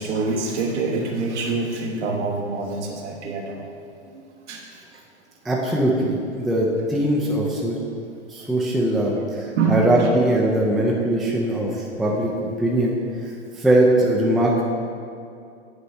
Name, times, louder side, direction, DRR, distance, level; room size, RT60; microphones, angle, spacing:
voice 1, 0.0-3.6 4.5-4.6 9.6-10.1, right 4 dB, 75° right, -1 dB, 1.1 m, -25 dB
voice 2, 5.4-7.8 8.3-13.0 13.6-14.6, right 1 dB, ahead, -3 dB, 0.3 m, -21 dB
8.2 x 3.1 x 5.5 m, 2.5 s
hypercardioid pair, 120°, 35 cm